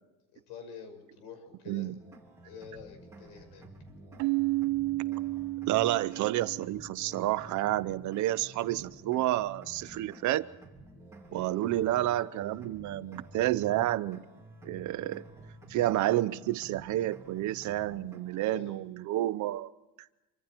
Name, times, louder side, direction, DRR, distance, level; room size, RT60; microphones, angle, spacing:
voice 1, 0.3-1.9 2.4-3.6 11.3-11.6 18.4-18.8, left 6 dB, 80° left, 8 dB, 5.9 m, -47 dB
sound 1, 2.0-18.4, right 2 dB, 5° right, 3.4 m, -51 dB
Keyboard (musical), 4.2-6.8, right 20 dB, 80° right, 0.8 m, -31 dB
voice 2, 5.7-10.5 11.3-14.2 14.6-15.2 15.7-19.7, right 15 dB, 45° right, 15 dB, 0.7 m, -30 dB
27.0 x 25.0 x 4.5 m, 1.0 s
cardioid pair, 175°, 40 cm